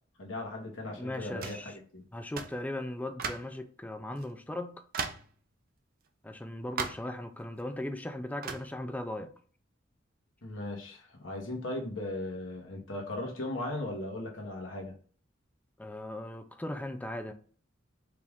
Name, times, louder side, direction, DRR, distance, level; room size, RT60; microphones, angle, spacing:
voice 1, 0.2-2.0 10.4-14.9, left 1 dB, 85° left, 1.3 m, -37 dB
voice 2, 1.0-1.8 2.1-4.8 6.2-9.3 15.8-17.3, left 1 dB, 10° left, 0.4 m, -38 dB
sound 1, 1.4-1.7 2.4-2.6 3.2-3.6 4.2-4.3 4.9-5.3 6.8-7.1 8.4-8.7, right 5 dB, 50° right, 0.5 m, -36 dB
4.8 x 2.4 x 3.5 m
head